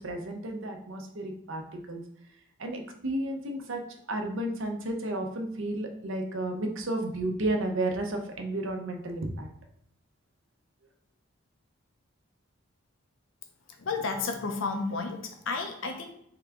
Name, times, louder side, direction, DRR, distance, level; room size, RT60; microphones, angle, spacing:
voice 1, 0.0-1.6 1.9-2.0 2.6-3.8 4.1-9.5, right 1 dB, 65° right, 3 dB, 0.7 m, -32 dB
voice 2, 13.8-16.1, left 4 dB, 70° left, 5 dB, 0.6 m, -32 dB
3.7 x 3.5 x 3.5 m, 0.72 s
head